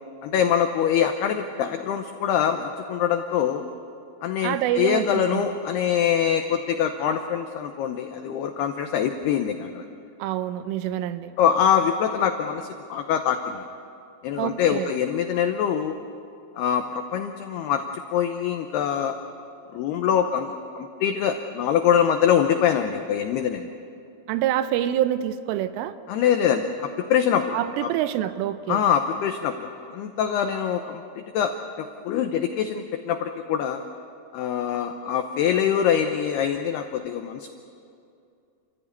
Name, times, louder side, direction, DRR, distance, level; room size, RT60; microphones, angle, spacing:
voice 1, 0.2-3.6 4.2-9.9 11.4-13.6 14.2-16.0 16.6-17.8 18.1-19.2 19.7-23.7 26.1-27.6 27.8-27.9 28.7-33.8 34.3-37.5, left 8 dB, 85° left, 6 dB, 2.3 m, -24 dB
voice 2, 4.4-5.5 10.2-11.3 14.4-14.9 24.3-25.9 27.5-28.8, right 11 dB, 80° right, 11 dB, 3.3 m, -26 dB
29.0 x 14.5 x 9.5 m, 2.5 s
omnidirectional pair, 5.8 m